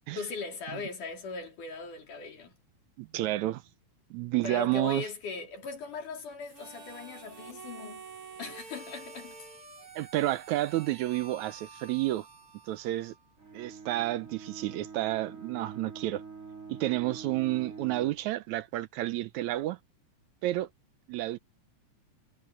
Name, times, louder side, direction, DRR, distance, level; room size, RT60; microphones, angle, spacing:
voice 1, 0.2-2.6 4.4-8.1 8.4-9.4, left 4 dB, 80° left, 5.2 m, -39 dB
voice 2, 3.0-3.6 4.1-5.0 10.0-12.3 12.7-13.1 13.5-16.2 16.7-19.8 20.4-20.7 21.1-21.4, right 16 dB, 75° right, 1.9 m, -30 dB
Harmonica, 6.4-13.3, right 4 dB, 45° right, 6.2 m, -49 dB
Bowed string instrument, 13.4-18.3, right 5 dB, 25° right, 4.2 m, -45 dB
omnidirectional pair, 3.6 m